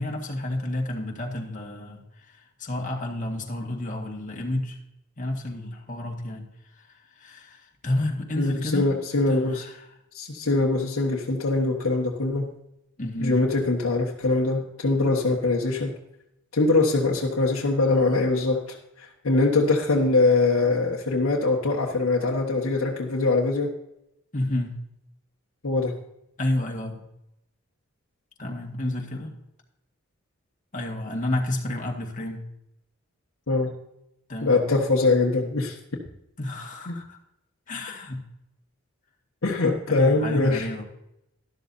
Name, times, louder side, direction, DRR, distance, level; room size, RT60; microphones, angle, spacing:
voice 1, 0.0-4.8 5.2-6.5 6.8-8.9 9.3-9.9 13.0-13.4 24.3-24.7 26.4-27.0 28.4-29.3 30.7-32.4 34.3-34.7 36.4-37.2 37.7-38.2 39.9-40.8, left 1 dB, 35° left, 1 dB, 1.8 m, -30 dB
voice 2, 8.4-9.6 10.1-12.5 13.2-15.9 16.5-18.6 19.0-23.7 25.6-25.9 33.5-33.7 34.4-35.8 36.9-37.0 39.4-40.7, left 3 dB, 80° left, -3 dB, 1.5 m, -23 dB
12.5 x 12.5 x 2.7 m, 0.83 s
head